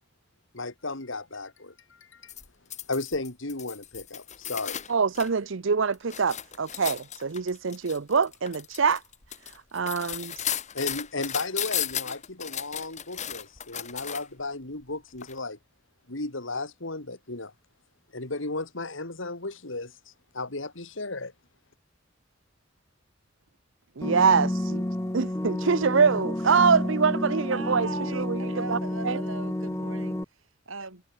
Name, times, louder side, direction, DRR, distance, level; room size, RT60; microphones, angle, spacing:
voice 1, 0.5-2.3 2.9-4.8 10.7-15.6 16.1-17.5 18.1-19.9 20.3-21.3, left 2 dB, 70° left, 2.7 m, -34 dB
sound 1, 2.3-5.3 5.7-14.4 15.2-15.3, left 10 dB, 35° left, 1.9 m, -35 dB
voice 2, 4.9-9.0 9.7-10.4 24.0-24.8 25.1-28.4 28.7-28.8 29.0-29.2, right 5 dB, 65° right, 0.7 m, -24 dB
sound 2, 24.0-30.2, left 1 dB, 15° left, 0.8 m, -30 dB
voice 3, 27.5-31.0, right 3 dB, 85° right, 6.6 m, -39 dB
head